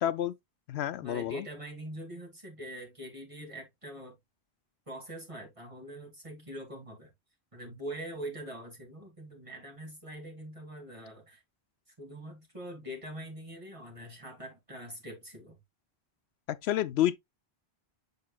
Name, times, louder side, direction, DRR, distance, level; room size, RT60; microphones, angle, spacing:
voice 1, 0.0-0.4 0.7-1.4 16.5-17.2, left 12 dB, 80° left, 0.8 m, -29 dB
voice 2, 1.0-4.2 4.9-7.1 7.5-11.4 12.0-15.6, right 1 dB, 30° right, 2.5 m, -43 dB
6.9 x 6.5 x 2.3 m
omnidirectional pair, 1.1 m